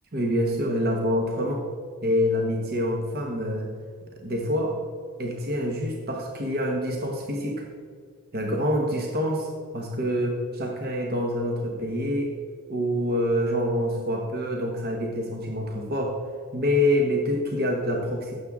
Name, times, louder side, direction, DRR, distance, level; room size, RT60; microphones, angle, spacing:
voice 1, 0.1-1.6 2.0-3.7 4.2-4.8 5.2-7.6 8.3-12.3 12.7-16.2 16.5-18.3, equal, 45° right, 0 dB, 1.2 m, -26 dB
16.0 x 7.3 x 3.7 m, 2.1 s
head